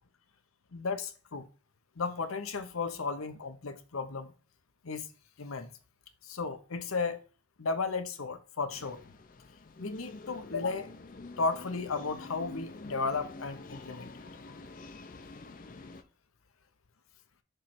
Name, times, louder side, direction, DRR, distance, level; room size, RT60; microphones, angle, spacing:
voice 1, 0.7-1.5 2.0-4.3 4.8-5.1 5.4-5.7 6.2-7.2 7.6-9.0 9.8-10.9 11.4-14.1, left 4 dB, 90° left, 0.9 m, -34 dB
sound 1, 8.7-16.0, left 3 dB, 40° left, 0.5 m, -47 dB
6.6 x 3.2 x 5.9 m
head